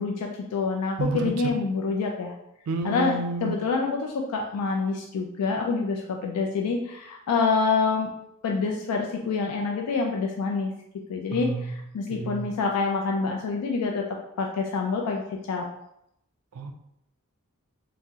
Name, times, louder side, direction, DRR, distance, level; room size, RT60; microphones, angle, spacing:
voice 1, 0.0-2.3 2.8-8.1 8.4-10.7 11.1-15.2 15.5-15.7, left 4 dB, 85° left, 2 dB, 0.3 m, -27 dB
voice 2, 1.0-1.3 2.7-3.6 11.3-11.7 12.1-12.5 16.6-16.7, right 2 dB, 65° right, 6 dB, 0.3 m, -30 dB
2.7 x 2.0 x 3.4 m, 0.79 s
head